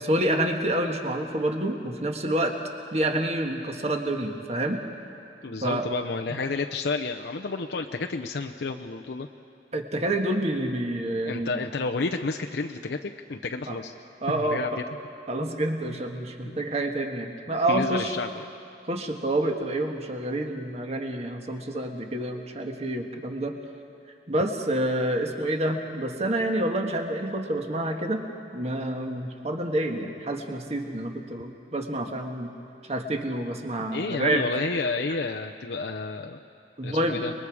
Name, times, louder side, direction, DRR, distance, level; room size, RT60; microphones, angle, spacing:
voice 1, 0.0-2.5 2.9-4.8 5.6-5.8 9.7-11.6 13.7-13.8 14.2-14.6 15.3-18.2 18.9-23.5 24.3-28.2 28.5-32.5 32.9-34.5 36.8-37.3, right 1 dB, 35° right, 4 dB, 1.5 m, -28 dB
voice 2, 5.4-9.3 11.2-13.9 14.4-14.7 16.5-16.6 17.7-18.4 33.8-36.4 36.8-37.3, left 3 dB, 70° left, 3 dB, 0.6 m, -31 dB
30.0 x 21.0 x 4.9 m, 2.6 s
head